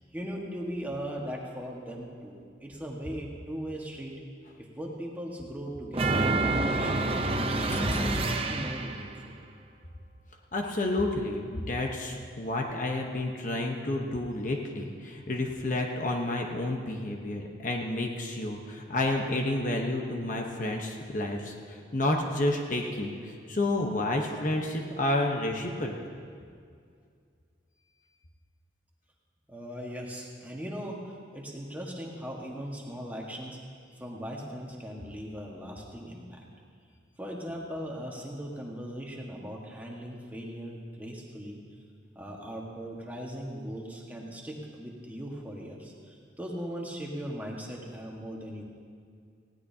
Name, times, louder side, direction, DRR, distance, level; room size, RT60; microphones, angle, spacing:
voice 1, 0.0-4.1 4.6-9.3 29.5-31.0 31.3-36.4 37.2-41.6 42.1-48.6, equal, 10° right, -2 dB, 1.5 m, -39 dB
sound 1, 5.9-9.1, right 2 dB, 30° right, 0.7 m, -27 dB
sound 2, 7.7-8.9, left 1 dB, 10° left, 0.3 m, -34 dB
voice 2, 10.5-26.1, left 1 dB, 40° left, 1 dB, 1.0 m, -30 dB
19.5 x 16.0 x 2.8 m, 2.2 s
head